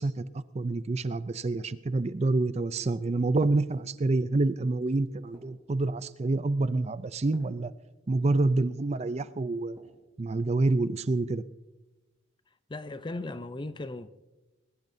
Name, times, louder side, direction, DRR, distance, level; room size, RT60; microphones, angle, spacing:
voice 1, 0.0-7.7 8.1-9.8 10.2-11.4, right 2 dB, 30° right, 0.4 m, -27 dB
sound 1, 3.6-10.1 10.6-11.3, right 1 dB, 15° right, 4.3 m, -60 dB
voice 2, 12.7-14.1, left 2 dB, 25° left, 0.5 m, -37 dB
21.0 x 20.5 x 2.7 m
head